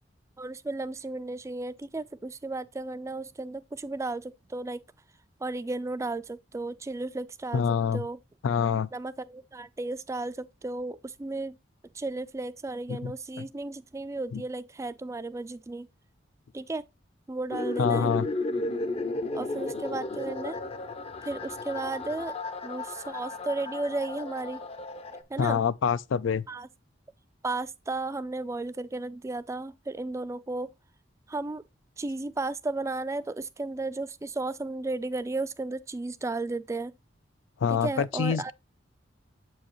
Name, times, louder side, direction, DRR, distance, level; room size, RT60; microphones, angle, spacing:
voice 1, 0.4-4.8 5.4-7.6 7.9-8.2 8.9-11.6 11.9-15.9 16.5-16.8 17.3-18.1 19.3-20.6 21.2-22.3 22.6-24.6 25.3-25.6 26.5-26.7 27.4-30.7 31.3-31.6 32.0-36.9 37.7-38.5, right 2 dB, 15° right, 0.3 m, -34 dB
voice 2, 7.5-8.0 8.4-8.9 12.9-13.1 13.4-13.5 14.3-14.4 17.8-18.3 25.4-26.4 37.6-38.5, left 7 dB, 85° left, 0.4 m, -26 dB
sound 1, 17.5-25.2, left 2 dB, 30° left, 0.6 m, -34 dB
7.5 x 4.6 x 3.0 m
head